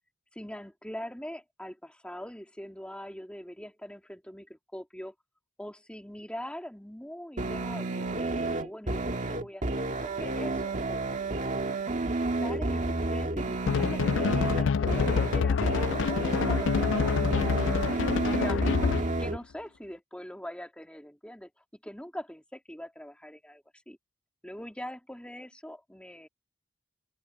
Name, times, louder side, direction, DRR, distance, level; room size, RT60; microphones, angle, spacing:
voice 1, 0.3-5.1 5.6-11.0 12.1-24.0 24.4-26.3, equal, 5° left, 3.2 m, -43 dB
sound 1, 7.4-19.4, right 2 dB, 40° right, 1.9 m, -31 dB
sound 2, 13.7-19.2, left 5 dB, 70° left, 0.4 m, -27 dB
open air
head